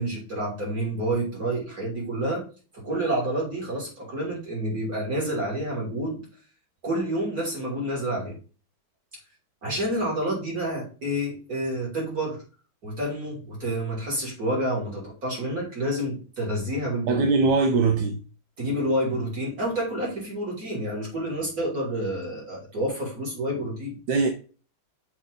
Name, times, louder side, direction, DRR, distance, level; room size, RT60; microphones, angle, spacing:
voice 1, 0.0-2.4 2.7-6.2 6.8-8.4 9.6-12.4 12.8-17.3 18.6-24.0, right 1 dB, 45° right, 3.6 m, -29 dB
voice 2, 17.1-18.2 24.1-24.3, right 4 dB, 65° right, 1.2 m, -21 dB
7.3 x 3.8 x 3.8 m
omnidirectional pair, 2.2 m